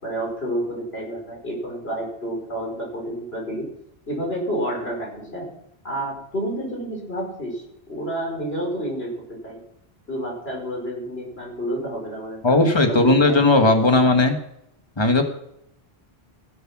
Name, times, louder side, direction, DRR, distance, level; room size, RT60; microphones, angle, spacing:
voice 1, 0.0-3.7 4.1-5.5 5.8-9.6 10.1-13.5, right 1 dB, 70° left, -1 dB, 5.6 m, -30 dB
voice 2, 12.4-14.4 15.0-15.2, left 2 dB, 25° left, 5 dB, 1.6 m, -17 dB
15.5 x 7.9 x 6.1 m, 0.77 s
omnidirectional pair, 1.1 m